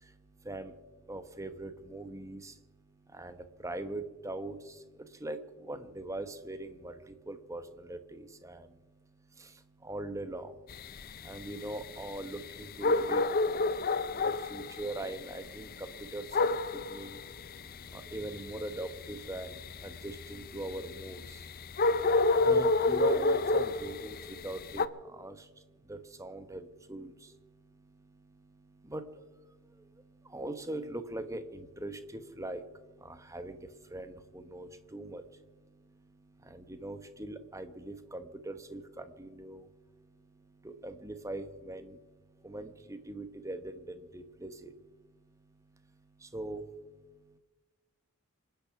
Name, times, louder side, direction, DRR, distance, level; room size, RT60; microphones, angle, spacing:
voice 1, 0.0-47.4, right 1 dB, 15° right, 10 dB, 1.1 m, -43 dB
sound 1, 10.7-24.9, left 3 dB, 40° left, 0.6 m, -30 dB
27.0 x 9.2 x 5.9 m, 1.2 s
head